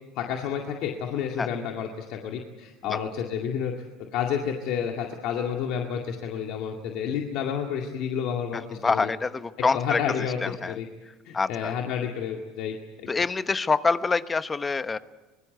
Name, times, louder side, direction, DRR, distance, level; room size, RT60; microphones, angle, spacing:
voice 1, 0.2-3.7 4.1-9.1 9.7-10.9 11.3-12.8, left 8 dB, 65° left, 2 dB, 2.1 m, -30 dB
voice 2, 8.5-10.8 11.3-11.7 13.1-15.0, left 4 dB, 20° left, 13 dB, 1.0 m, -26 dB
25.0 x 20.5 x 8.2 m, 1.2 s
supercardioid pair, 90°, 0 cm